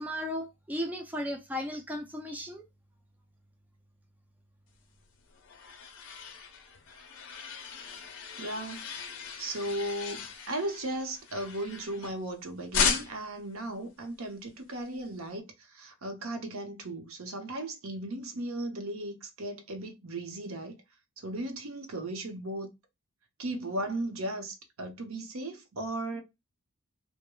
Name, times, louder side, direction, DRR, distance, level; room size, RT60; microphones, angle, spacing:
voice 1, 0.0-2.6, equal, 5° right, 0.4 m, -35 dB
sound 1, 5.0-12.3 12.7-13.4, left 6 dB, 60° left, 0.7 m, -36 dB
voice 2, 8.4-8.9 9.4-20.8 21.2-22.7 23.4-26.2, right 1 dB, 65° right, 0.8 m, -36 dB
3.1 x 2.1 x 2.2 m
head